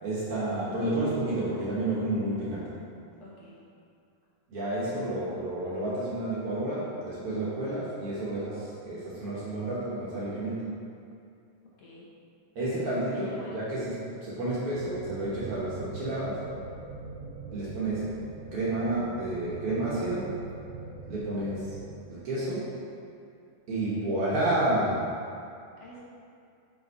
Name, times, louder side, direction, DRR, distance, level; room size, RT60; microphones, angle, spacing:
voice 1, 0.0-2.7 4.5-10.7 12.5-16.5 17.5-18.1 18.5-20.3 21.0-21.7 22.1-22.7 23.7-25.1, right 1 dB, 65° right, -8 dB, 1.5 m, -30 dB
voice 2, 3.2-3.6 11.8-12.1 13.1-13.7 25.8-26.0, left 2 dB, 75° left, -6 dB, 1.5 m, -47 dB
sound 1, 14.7-22.0, right 4 dB, 90° right, 2.3 m, -42 dB
5.5 x 5.2 x 4.6 m, 2.4 s
omnidirectional pair, 3.9 m